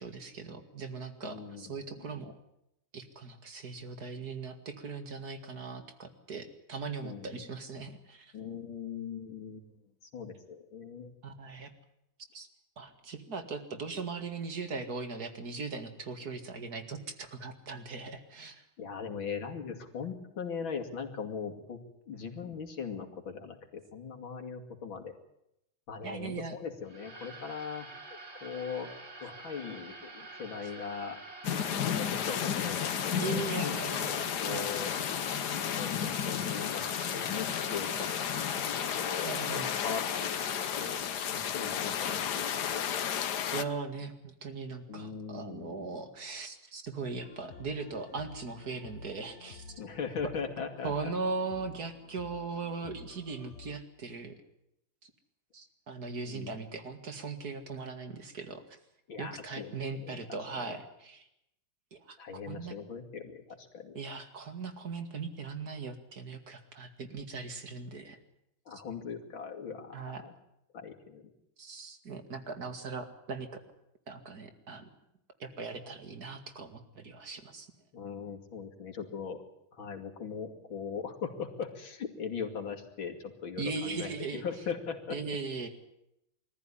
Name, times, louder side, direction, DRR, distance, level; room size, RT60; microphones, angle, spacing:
voice 1, 0.0-2.4 2.9-8.3 11.2-11.7 12.3-12.5 12.8-18.6 26.0-26.6 33.2-34.2 34.5-34.7 39.2-39.7 43.5-49.7 50.8-54.3 55.0-55.1 55.5-58.8 59.2-61.3 61.9-62.2 62.5-62.7 64.0-68.2 69.9-70.2 71.6-73.5 74.1-74.9 75.4-77.7 83.6-84.4 85.1-85.7, right 4 dB, 50° right, 7 dB, 2.5 m, -39 dB
voice 2, 1.2-1.7 2.0-2.1 7.0-7.4 8.3-9.8 10.0-11.1 18.8-21.8 22.1-25.1 25.9-28.9 29.2-31.2 31.7-33.7 34.0-34.9 35.8-38.1 38.3-40.3 40.8-41.0 41.3-43.4 44.9-45.9 49.8-51.1 56.2-56.6 59.1-60.2 60.6-60.8 62.2-64.0 68.7-70.3 70.7-71.3 77.9-79.4 79.7-85.2, left 6 dB, 90° left, 3 dB, 3.3 m, -40 dB
sound 1, 26.8-41.0, right 3 dB, 35° right, 2.7 m, -47 dB
sound 2, 31.4-43.6, left 9 dB, 60° left, 1.5 m, -32 dB
sound 3, 47.2-53.8, left 5 dB, 40° left, 1.5 m, -51 dB
23.0 x 14.5 x 10.0 m, 0.81 s
omnidirectional pair, 2.1 m